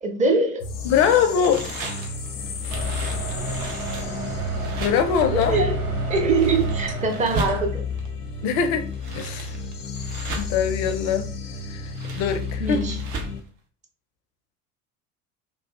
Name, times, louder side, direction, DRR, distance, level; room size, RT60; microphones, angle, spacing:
voice 1, 0.0-0.6 5.3-7.8 12.6-13.0, right 3 dB, 15° right, 0.5 m, -23 dB
sound 1, 0.6-13.4, left 4 dB, 85° left, 0.6 m, -32 dB
voice 2, 0.8-1.7 4.8-5.6 8.4-8.8 9.1-9.5 10.4-11.3 11.7-12.8, left 7 dB, 40° left, 0.4 m, -22 dB
sound 2, 0.9-8.1 8.7-10.7 11.7-13.5, right 2 dB, 60° right, 0.8 m, -36 dB
sound 3, 2.7-7.8, right 4 dB, 30° right, 1.2 m, -30 dB
3.0 x 2.4 x 2.3 m
figure-of-eight pair, 65°, 46 cm